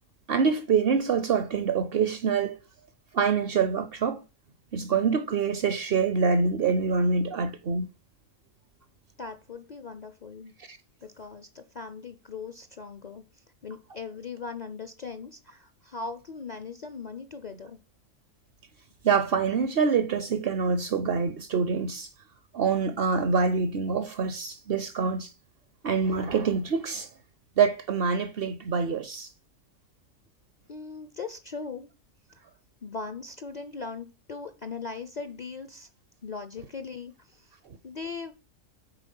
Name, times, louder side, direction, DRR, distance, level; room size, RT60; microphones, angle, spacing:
voice 1, 0.3-2.6 3.1-4.2 4.7-7.9 10.7-10.8 19.0-22.1 22.5-25.3 25.8-27.1 27.6-29.3, right 5 dB, 60° right, 0.7 m, -25 dB
voice 2, 9.2-10.5 11.0-17.8 30.7-31.9 32.8-35.9 36.2-37.5 37.8-38.3, left 4 dB, 50° left, 0.5 m, -39 dB
9.2 x 4.0 x 5.4 m
omnidirectional pair, 1.4 m